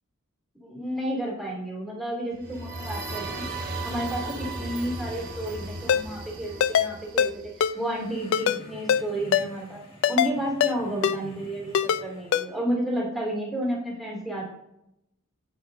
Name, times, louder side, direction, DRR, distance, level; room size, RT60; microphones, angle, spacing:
voice 1, 0.6-3.4 3.8-9.8 10.1-14.4, right 1 dB, ahead, -4 dB, 2.3 m, -31 dB
sound 1, 2.3-8.1, right 2 dB, 45° right, 1.3 m, -36 dB
Ringtone, 5.9-6.0 6.6-6.9 7.2-7.3 7.6-7.7 8.3-8.6 8.9-9.0 9.3-9.5 10.0-10.3 10.6-10.7 11.0-11.2 11.7-12.0 12.3-12.4, left 8 dB, 65° left, 0.3 m, -22 dB
sound 2, 7.6-12.6, equal, 25° left, 1.3 m, -49 dB
9.2 x 8.2 x 2.5 m, 0.83 s
head